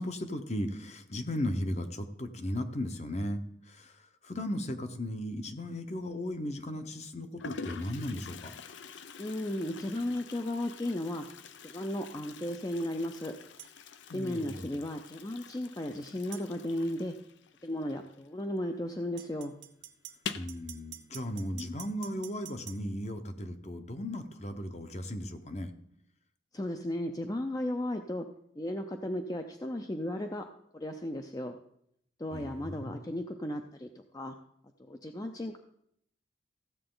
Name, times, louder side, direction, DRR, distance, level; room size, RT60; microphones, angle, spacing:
voice 1, 0.0-8.5 14.1-14.8 20.3-25.7 32.3-33.0, left 1 dB, 35° left, 8 dB, 0.9 m, -36 dB
Toilet flush, 5.9-6.4 7.1-7.2 7.4-18.7 18.9-19.0 19.3-19.4 20.1-20.6, left 6 dB, 75° left, 0.6 m, -46 dB
voice 2, 9.2-11.3 11.6-13.4 14.1-17.1 17.6-19.5 26.5-28.3 28.6-30.5 30.7-31.6 32.2-34.3 34.8-35.6, left 1 dB, 20° left, 5 dB, 0.5 m, -35 dB
sound 1, 13.6-13.7 16.3-16.5 19.2-22.8, right 12 dB, 70° right, 0.9 m, -47 dB
15.0 x 7.8 x 3.9 m, 0.71 s
head